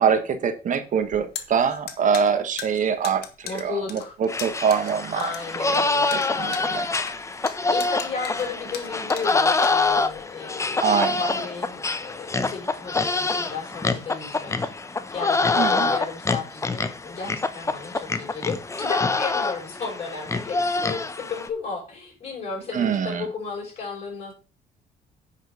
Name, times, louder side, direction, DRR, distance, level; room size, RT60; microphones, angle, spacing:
voice 1, 0.0-5.2 5.7-6.9 10.8-11.2 15.6-15.9 22.7-23.3, right 7 dB, 50° right, 1.3 m, -24 dB
sound 1, 1.0-10.2, left 9 dB, 70° left, 1.5 m, -39 dB
voice 2, 3.4-4.1 5.1-7.4 7.7-14.6 15.1-24.3, left 5 dB, 35° left, 5.9 m, -34 dB
sound 2, 4.3-21.5, left 3 dB, 15° left, 0.8 m, -26 dB
9.7 x 5.0 x 5.7 m
cardioid pair, 110°, 17 cm